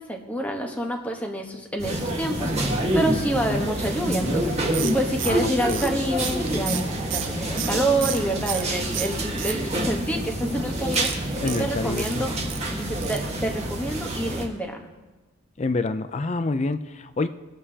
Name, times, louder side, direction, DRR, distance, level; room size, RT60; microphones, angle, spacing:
voice 1, 0.0-12.4 12.7-14.9, right 1 dB, 5° left, 1 dB, 1.1 m, -28 dB
sound 1, 1.8-14.5, right 1 dB, 30° right, 1.5 m, -27 dB
sound 2, 4.7-8.7 8.9-10.0 10.9-12.6 13.0-13.3 13.6-13.7 14.0-14.1, right 11 dB, 60° right, 0.6 m, -32 dB
voice 2, 5.2-5.8 11.4-12.2 15.6-17.3, left 3 dB, 30° left, 11 dB, 0.4 m, -27 dB
22.5 x 7.4 x 2.8 m, 1.2 s
head